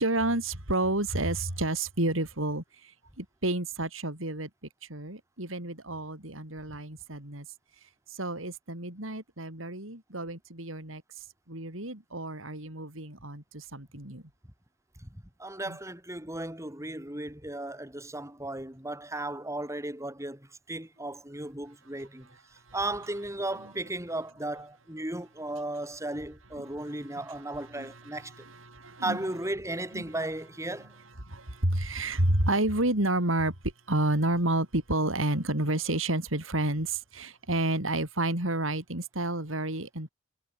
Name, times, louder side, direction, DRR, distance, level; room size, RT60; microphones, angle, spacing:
voice 1, 0.0-2.6 3.2-4.5 4.9-7.5 8.2-11.0 11.5-14.2 15.7-15.8 27.8-27.9 28.7-29.2 29.9-30.0 31.3-33.5 33.9-40.1, right 1 dB, 85° right, 6.1 m, -30 dB
voice 2, 15.0-22.3 22.7-28.3 29.0-30.9, right 1 dB, 15° right, 5.5 m, -35 dB
head